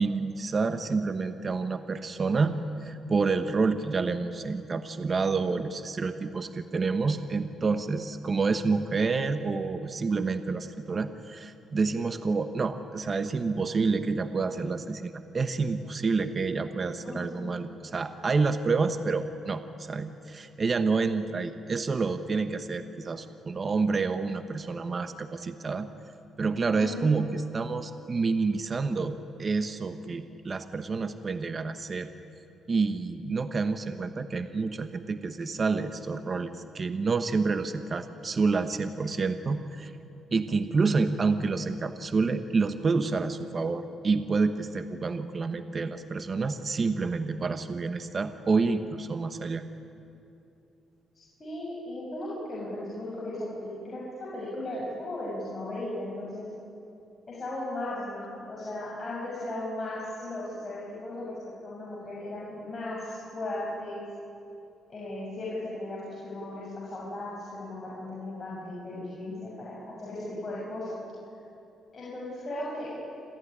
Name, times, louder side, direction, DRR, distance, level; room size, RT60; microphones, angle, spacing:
voice 1, 0.0-25.9 26.4-32.1 32.7-39.9 40.3-49.6, right 4 dB, 35° right, 9 dB, 1.2 m, -28 dB
voice 2, 17.0-17.5 26.8-27.2 51.1-54.0 54.3-56.5 57.3-64.0 64.9-71.0 71.9-72.9, left 1 dB, 30° left, -6 dB, 6.7 m, -36 dB
27.5 x 14.5 x 10.0 m, 2.6 s
cardioid pair, 90°, 0 cm